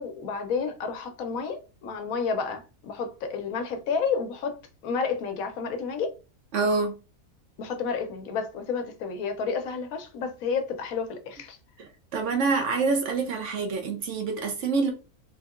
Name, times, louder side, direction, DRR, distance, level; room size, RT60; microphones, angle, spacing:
voice 1, 0.0-4.6 4.8-6.1 7.6-11.6, left 5 dB, 75° left, 1.0 m, -30 dB
voice 2, 6.5-6.9 11.8-14.9, right 4 dB, 65° right, 0.9 m, -26 dB
3.5 x 2.7 x 2.3 m
omnidirectional pair, 1.5 m